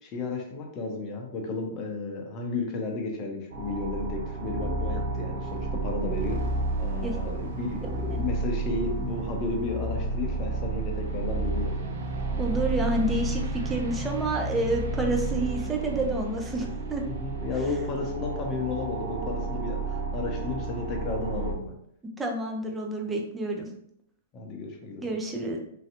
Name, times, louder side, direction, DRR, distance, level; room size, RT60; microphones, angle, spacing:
voice 1, 0.0-6.4 6.8-11.9 17.0-21.7 24.3-25.1, left 3 dB, 35° left, 2 dB, 0.7 m, -33 dB
sound 1, 3.5-21.5, right 3 dB, 60° right, 0.5 m, -31 dB
voice 2, 12.4-17.0 22.2-23.7 25.0-25.6, right 1 dB, 15° right, 2 dB, 0.6 m, -29 dB
3.2 x 2.7 x 2.5 m, 0.72 s
figure-of-eight pair, 110°, 0 cm